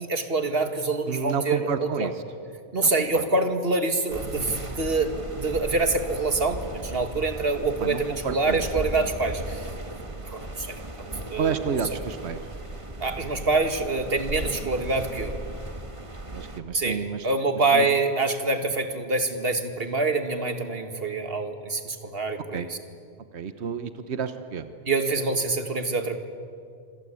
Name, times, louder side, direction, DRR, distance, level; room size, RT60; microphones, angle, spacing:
voice 1, 0.0-2.1 2.7-9.7 10.2-10.8 11.3-12.0 13.0-15.4 16.7-22.8 24.9-26.2, right 3 dB, 60° right, 7 dB, 2.2 m, -26 dB
voice 2, 1.1-2.1 2.8-3.2 7.8-8.6 11.4-12.4 16.3-17.3 17.7-17.9 22.5-22.7 23.3-24.7, right 6 dB, 80° right, 10 dB, 1.3 m, -30 dB
sound 1, 4.1-16.6, right 1 dB, 30° right, 1.6 m, -37 dB
27.0 x 26.0 x 8.6 m, 2.3 s
omnidirectional pair, 1.1 m